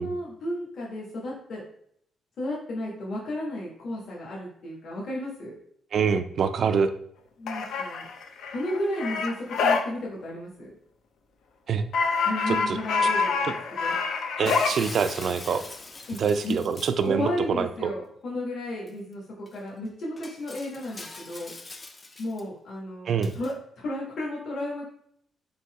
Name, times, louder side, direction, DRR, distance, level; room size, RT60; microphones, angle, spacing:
voice 1, 0.0-1.6 2.4-5.5 7.4-8.1 8.5-10.7 12.2-13.9 16.1-16.2 16.4-16.6 17.0-21.5 22.2-24.8, left 1 dB, 50° left, -5 dB, 1.2 m, -33 dB
voice 2, 5.9-6.9 11.7-11.8 12.5-12.8 13.4-13.5 14.4-15.6 16.2-17.9 23.1-23.3, right 6 dB, 50° right, 10 dB, 0.3 m, -25 dB
sound 1, 7.5-9.8 11.9-14.7, left 4 dB, 75° left, 0.5 m, -26 dB
Shatter, 14.5-17.1 18.9-19.0 19.5-19.6 20.2-22.4 23.2-23.5, left 2 dB, 20° left, 0.4 m, -42 dB
4.0 x 2.7 x 4.6 m, 0.69 s
cardioid pair, 165°, 0 cm